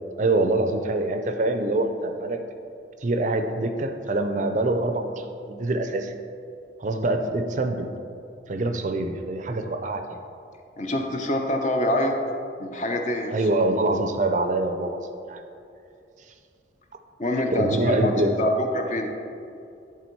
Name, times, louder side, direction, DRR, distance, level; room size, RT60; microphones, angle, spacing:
voice 1, 0.2-2.4 3.0-6.1 6.8-7.9 8.5-10.2 13.3-15.4 17.5-18.5, right 2 dB, 40° right, 6 dB, 0.4 m, -25 dB
voice 2, 10.8-12.1 12.6-13.4 17.2-18.1 18.4-19.1, left 1 dB, 40° left, 3 dB, 0.7 m, -25 dB
10.5 x 3.7 x 4.5 m, 2.5 s
head